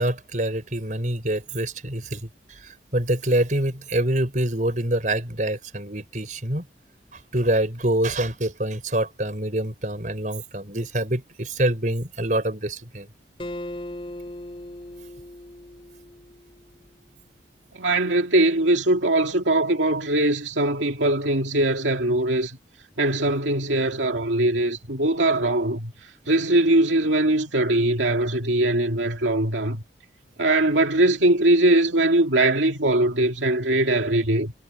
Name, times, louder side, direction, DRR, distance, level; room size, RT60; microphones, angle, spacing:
voice 1, 0.0-6.6 7.1-13.1, right 1 dB, 45° right, 5.1 m, -26 dB
Acoustic guitar, 13.4-16.8, left 1 dB, 30° left, 4.3 m, -38 dB
voice 2, 17.8-22.6 23.0-25.9 26.3-29.8 30.4-34.5, right 1 dB, 85° right, 2.5 m, -21 dB
head